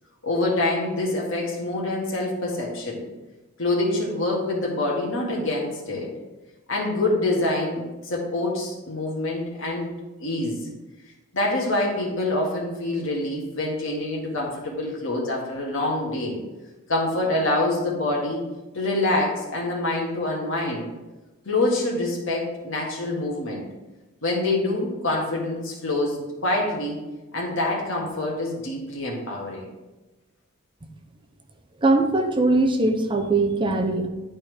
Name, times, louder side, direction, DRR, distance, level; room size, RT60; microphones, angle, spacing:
voice 1, 0.2-3.0 3.6-6.1 6.7-9.9 10.2-10.7 11.3-16.4 16.9-18.5 18.7-20.9 21.5-23.7 24.2-27.0 27.3-29.7, left 2 dB, 60° left, -2 dB, 1.8 m, -26 dB
voice 2, 31.8-34.1, right 2 dB, 20° right, 5 dB, 0.6 m, -21 dB
10.0 x 4.3 x 3.4 m, 1.1 s
head